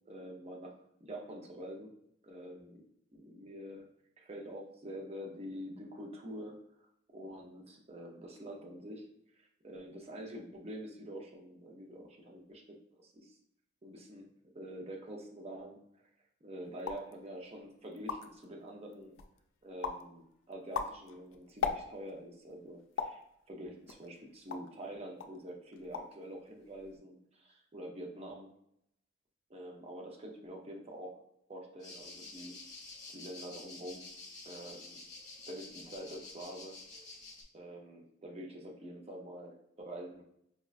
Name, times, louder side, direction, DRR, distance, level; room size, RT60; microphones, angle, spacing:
voice 1, 0.0-0.7 1.0-1.9 2.2-2.8 3.1-3.9 4.2-6.5 7.1-9.1 9.4-12.6 13.0-13.4 13.8-14.3 14.5-15.8 16.4-19.1 19.6-23.2 23.5-28.5 29.5-31.2 31.5-32.6 33.1-34.0 34.4-35.0 35.5-36.8 37.5-40.2, equal, 35° right, 1 dB, 0.5 m, -46 dB
sound 1, 16.8-17.1 17.6-17.7 17.9-18.4 18.9-19.4 19.8-20.1 20.5-22.2 23.0-23.3 23.9-24.8 25.2-25.4 25.7-26.2 26.5-27.0, left 6 dB, 90° left, 0.3 m, -38 dB
sound 2, 31.8-37.4, left 3 dB, 20° left, 0.9 m, -49 dB
4.8 x 2.2 x 2.4 m, 0.75 s
head